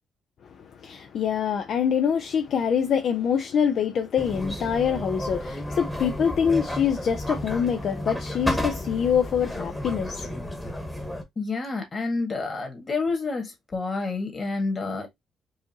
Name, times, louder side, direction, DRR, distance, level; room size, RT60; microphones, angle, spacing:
voice 1, 0.8-10.5, left 7 dB, 65° left, 0.5 m, -25 dB
sound 1, 4.2-11.2, left 1 dB, 10° left, 1.1 m, -32 dB
voice 2, 11.3-15.1, left 3 dB, 35° left, 1.7 m, -29 dB
4.7 x 2.7 x 2.8 m
cardioid pair, 90°, 0 cm